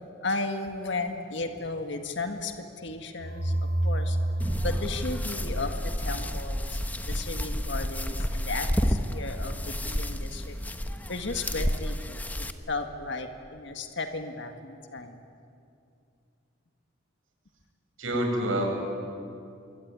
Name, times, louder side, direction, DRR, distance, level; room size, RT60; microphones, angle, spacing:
voice 1, 0.2-4.2 4.6-5.8 6.0-10.6 11.1-12.2 12.7-15.2, left 3 dB, 60° left, 6 dB, 1.8 m, -35 dB
sound 1, 3.2-6.1, right 1 dB, 70° right, 4.5 m, -29 dB
sound 2, 4.4-12.5, equal, 10° left, 1.0 m, -31 dB
voice 2, 18.0-18.6, right 1 dB, 85° right, 1 dB, 6.9 m, -27 dB
27.0 x 23.0 x 9.7 m, 2.5 s
head